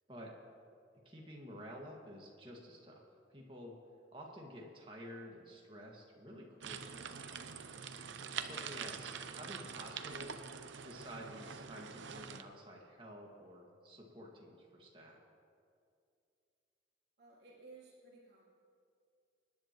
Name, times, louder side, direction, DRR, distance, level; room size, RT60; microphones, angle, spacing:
voice 1, 1.1-3.0 3.3-3.8 4.1-6.8 8.4-10.4 10.8-15.2, equal, 25° right, -1 dB, 1.9 m, -51 dB
sound 1, 6.6-12.4, right 6 dB, 80° right, 0.7 m, -45 dB
voice 2, 17.2-18.4, right 3 dB, 60° right, -6 dB, 3.0 m, -57 dB
25.5 x 10.5 x 3.0 m, 2.4 s
head